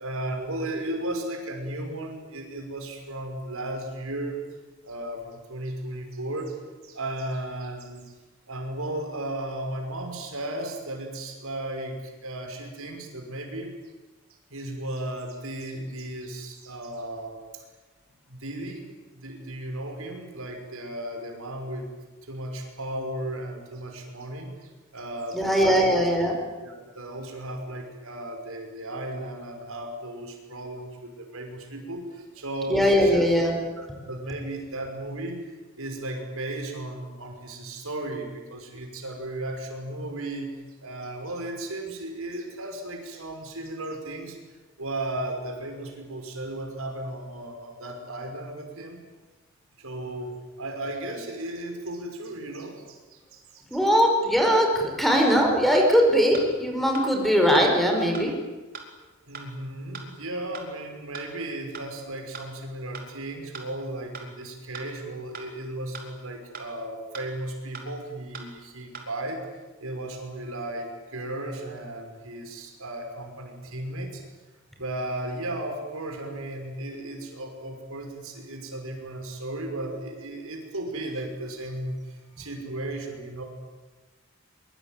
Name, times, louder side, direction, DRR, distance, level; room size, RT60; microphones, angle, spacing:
voice 1, 0.0-4.4 4.8-6.6 6.8-8.1 8.5-13.7 14.5-17.6 18.3-18.9 19.1-21.9 22.3-26.1 26.6-33.2 33.8-40.5 40.8-44.4 44.8-49.0 49.8-50.3 50.6-53.6 59.3-69.5 69.8-74.2 74.8-83.4, right 1 dB, 80° right, 4 dB, 5.8 m, -35 dB
voice 2, 25.3-26.3 32.7-33.5 53.7-58.3, equal, ahead, 2 dB, 5.4 m, -20 dB
sound 1, 55.1-55.2 55.7-55.9 56.3-56.4 56.9-57.1 57.5-57.6 58.1-58.3 58.7-58.8 59.3-59.5 59.9-60.0 60.5-60.7 61.1-61.2 61.7-61.9 62.3-62.5 62.9-63.1 63.5-63.6 64.1-64.3 64.7-64.8 65.3-65.5 65.9-66.0 66.5-66.7 67.1-67.2 67.7-67.9 68.3-68.4 68.9-69.1, right 6 dB, 45° right, 4.4 m, -39 dB
24.0 x 23.5 x 9.2 m, 1.2 s
head